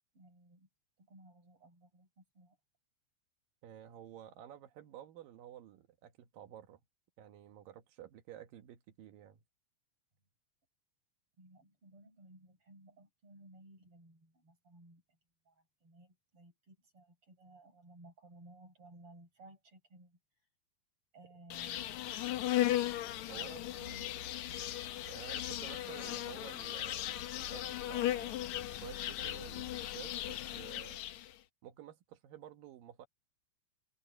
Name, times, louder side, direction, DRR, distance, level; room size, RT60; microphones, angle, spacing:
voice 1, 0.1-0.7 1.0-2.6 11.4-15.2 15.4-20.2 21.1-22.0 23.4-24.8, right 1 dB, 40° right, 8.3 m, -58 dB
voice 2, 3.6-6.8 7.2-9.4 23.3-23.6 25.1-31.0 31.6-33.1, right 11 dB, 75° right, 3.0 m, -52 dB
Insect, 21.5-31.3, left 13 dB, 70° left, 1.9 m, -37 dB
omnidirectional pair, 4.1 m